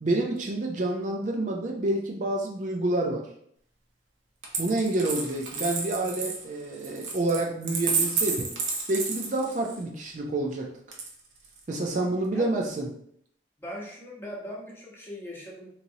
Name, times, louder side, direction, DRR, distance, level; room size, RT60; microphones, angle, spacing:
voice 1, 0.0-3.3 4.6-8.5 8.9-10.7 11.7-12.9, right 2 dB, 45° right, 0 dB, 0.4 m, -28 dB
Coin (dropping), 4.4-9.8 10.9-11.6, right 5 dB, 85° right, 0.7 m, -31 dB
voice 2, 13.6-15.7, equal, 15° left, -5 dB, 0.9 m, -40 dB
3.9 x 3.0 x 2.7 m, 0.69 s
head